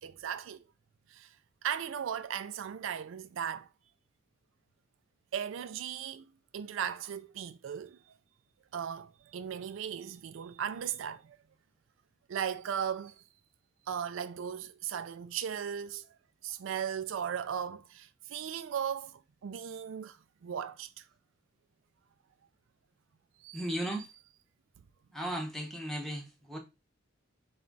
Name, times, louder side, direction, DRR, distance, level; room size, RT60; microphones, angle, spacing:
voice 1, 0.0-0.6 1.1-1.3 1.6-3.7 5.3-6.3 6.5-8.0 8.7-11.4 12.3-13.2 13.9-16.1 16.4-21.0 23.4-23.7, right 8 dB, 70° right, 0.3 m, -37 dB
voice 2, 23.5-24.1 25.1-26.6, right 1 dB, ahead, 0.7 m, -36 dB
4.2 x 2.3 x 3.8 m
head